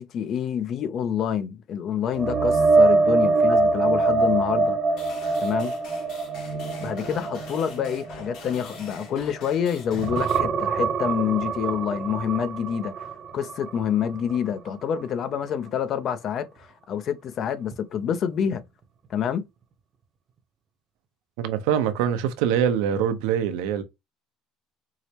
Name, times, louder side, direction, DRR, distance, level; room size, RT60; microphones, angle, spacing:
voice 1, 0.0-4.8 5.4-5.7 6.8-13.1 13.3-18.6 19.1-19.5, left 8 dB, 45° left, 0.5 m, -27 dB
sound 1, 2.1-9.6 9.9-13.8 14.1-14.4 17.7-17.8, right 3 dB, 40° right, 0.7 m, -24 dB
sound 2, 5.0-10.4, left 4 dB, 65° left, 2.1 m, -45 dB
voice 2, 21.4-23.8, right 9 dB, 85° right, 0.7 m, -24 dB
4.7 x 2.1 x 2.8 m
cardioid pair, 135°, 0 cm